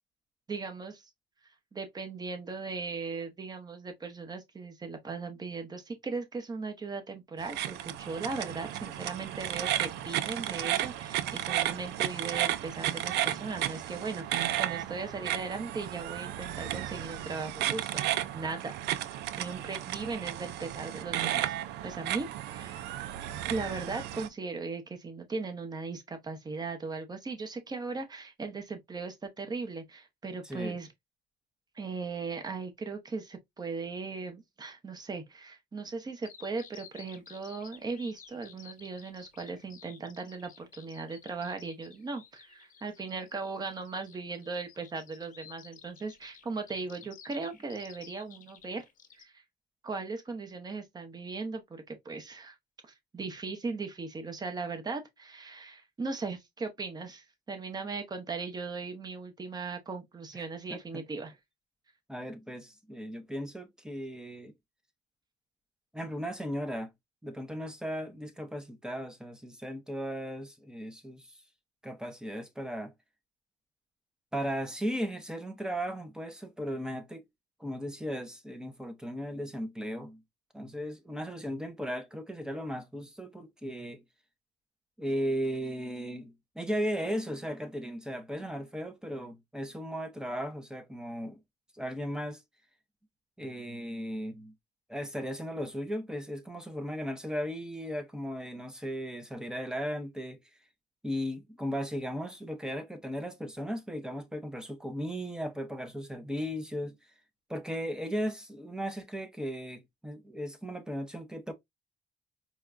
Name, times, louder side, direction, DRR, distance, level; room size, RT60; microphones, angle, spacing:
voice 1, 0.5-1.0 1.7-18.7 19.4-21.6 21.8-22.9 23.5-30.9 31.7-48.8 49.2-49.4 49.8-52.5 53.1-61.3, right 4 dB, 25° right, 0.9 m, -38 dB
sound 1, 7.4-24.3, right 13 dB, 80° right, 0.4 m, -33 dB
voice 2, 30.4-30.8 60.7-61.0 62.1-64.5 65.9-66.9 67.2-71.3 71.8-72.9 74.3-77.2 77.6-80.2 80.5-84.0 85.0-91.4 91.8-92.4 93.4-94.5 94.9-100.4 101.0-107.0 107.5-111.5, equal, 5° right, 0.7 m, -36 dB
Bird vocalization bird call bird song, 36.2-49.2, left 8 dB, 50° left, 0.8 m, -53 dB
4.5 x 2.3 x 2.5 m
cardioid pair, 110°, 17 cm